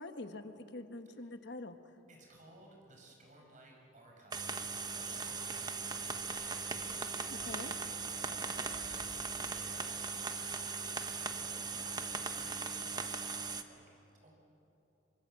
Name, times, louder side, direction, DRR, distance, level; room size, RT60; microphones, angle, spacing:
voice 1, 0.0-1.8 7.3-7.7, left 2 dB, 60° left, 7 dB, 1.3 m, -45 dB
voice 2, 2.1-4.6 4.9-7.9 8.2-9.1 9.5-14.3, right 1 dB, 40° right, 0 dB, 5.6 m, -59 dB
sound 1, 4.3-13.6, right 4 dB, 20° right, 1.0 m, -39 dB
26.0 x 24.0 x 7.6 m, 3.0 s
head